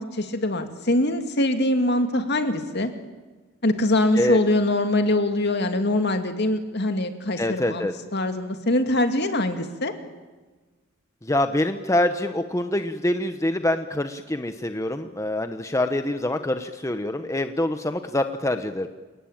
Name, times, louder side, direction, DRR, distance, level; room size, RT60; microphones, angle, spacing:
voice 1, 0.0-2.9 3.6-9.9, left 1 dB, 55° left, 7 dB, 2.4 m, -23 dB
voice 2, 7.4-7.9 11.2-18.9, left 1 dB, 15° left, 8 dB, 0.9 m, -25 dB
28.5 x 18.5 x 8.9 m, 1.3 s
head